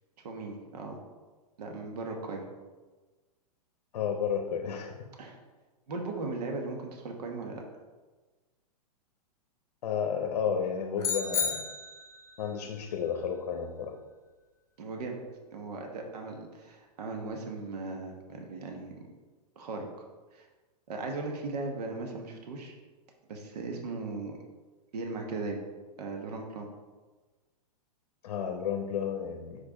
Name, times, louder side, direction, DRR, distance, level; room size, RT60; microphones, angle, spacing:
voice 1, 0.2-1.0 1.6-2.4 5.2-5.4 5.9-7.6 14.8-15.2 15.5-19.0 19.6-19.9 20.3-20.5 20.9-22.7 23.3-24.4 24.9-25.6 26.0-26.7, right 3 dB, 75° right, 2 dB, 1.2 m, -37 dB
voice 2, 3.9-5.0 9.8-11.6 12.4-13.9 28.2-29.6, left 7 dB, 70° left, 3 dB, 0.8 m, -32 dB
sound 1, 11.0-12.3, left 6 dB, 15° left, 1.9 m, -32 dB
5.1 x 4.5 x 4.8 m, 1.3 s
hypercardioid pair, 140°, 20 cm